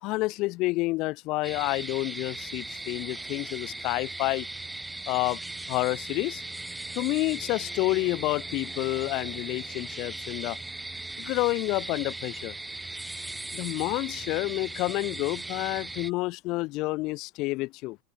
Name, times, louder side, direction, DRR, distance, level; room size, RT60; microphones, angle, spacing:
voice 1, 0.0-4.5 5.1-5.4 5.7-6.4 6.9-10.6 11.2-12.6 13.5-18.0, left 21 dB, 55° left, 3.5 m, -29 dB
sound 1, 1.4-16.1, right 2 dB, 5° right, 1.9 m, -38 dB
supercardioid pair, 130°, 0 cm